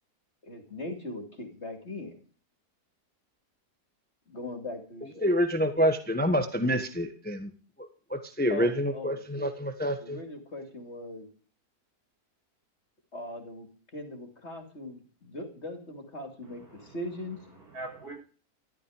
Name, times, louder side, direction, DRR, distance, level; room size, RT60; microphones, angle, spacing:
voice 1, 0.4-2.2 4.3-5.1 8.5-9.7 10.0-11.3 13.1-13.7 13.9-17.4, left 2 dB, 45° left, 3.0 m, -40 dB
voice 2, 5.2-7.5 7.8-10.2, equal, 5° left, 1.1 m, -27 dB
voice 3, 16.4-18.1, right 2 dB, 70° right, 7.2 m, -45 dB
13.5 x 13.0 x 5.0 m
omnidirectional pair, 1.7 m